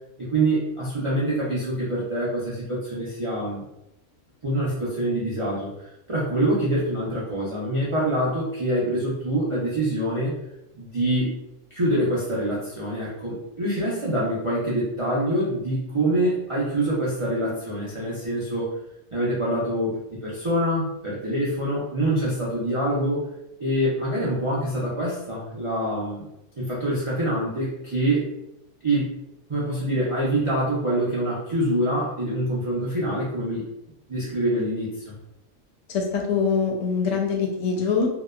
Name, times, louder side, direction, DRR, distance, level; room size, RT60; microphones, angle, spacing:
voice 1, 0.2-3.6 4.4-5.7 6.1-10.3 10.7-11.3 11.7-18.7 19.1-23.2 23.6-26.2 26.6-28.2 28.8-29.1 29.5-33.6 34.1-35.1, right 1 dB, 55° right, -8 dB, 0.3 m, -25 dB
voice 2, 35.9-38.1, left 5 dB, 80° left, 0 dB, 1.0 m, -23 dB
2.7 x 2.1 x 2.3 m, 0.84 s
omnidirectional pair, 1.3 m